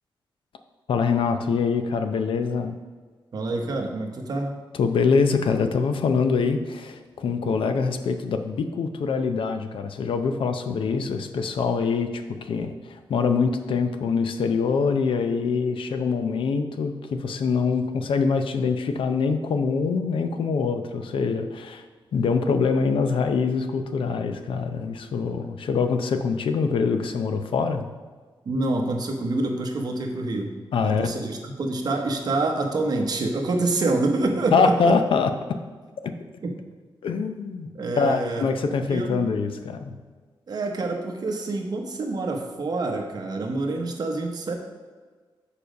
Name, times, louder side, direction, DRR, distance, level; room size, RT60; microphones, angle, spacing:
voice 1, 0.9-2.7 4.8-21.8 22.1-27.8 30.7-31.1 34.5-35.3 37.0-37.7 38.0-40.0, left 5 dB, 85° left, 8 dB, 0.6 m, -24 dB
voice 2, 3.3-4.5 28.4-30.5 30.8-34.9 36.4-36.6 37.7-39.2 40.5-44.6, right 2 dB, 50° right, 3 dB, 1.0 m, -27 dB
7.0 x 5.0 x 5.1 m, 1.5 s
wide cardioid pair, 160°, 9 cm